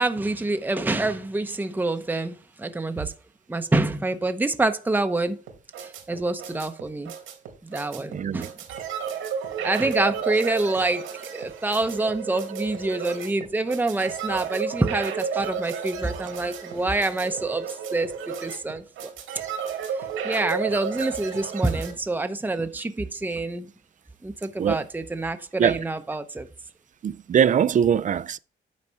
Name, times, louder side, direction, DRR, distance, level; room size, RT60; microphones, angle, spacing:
voice 1, 0.0-3.1 3.5-5.4 5.8-7.1 7.6-8.5 9.6-11.0 11.3-17.7 17.9-19.1 20.2-23.7 24.2-26.5, right 2 dB, 10° right, 0.8 m, -26 dB
sound 1, 5.5-21.9, right 7 dB, 90° right, 2.4 m, -33 dB
voice 2, 8.1-8.5 24.6-24.8 25.6-25.8 27.0-28.4, right 8 dB, 40° right, 0.4 m, -22 dB
9.6 x 4.2 x 5.6 m
cardioid pair, 90°, 20 cm